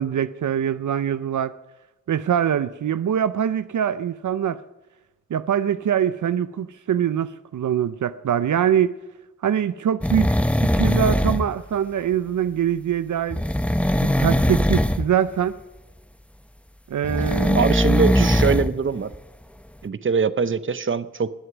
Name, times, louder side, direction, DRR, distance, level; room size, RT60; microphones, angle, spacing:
voice 1, 0.0-1.5 2.1-4.6 5.3-8.9 9.4-13.4 14.0-15.6 16.9-17.7 18.2-18.3, right 9 dB, 75° right, 0.5 m, -23 dB
sound 1, 10.0-11.5 13.3-15.1 17.0-18.7 19.1-19.2, left 1 dB, 5° left, 0.8 m, -20 dB
voice 2, 17.5-19.1 19.8-21.3, right 5 dB, 40° right, 0.7 m, -23 dB
21.0 x 7.9 x 6.1 m
cardioid pair, 60°, 30 cm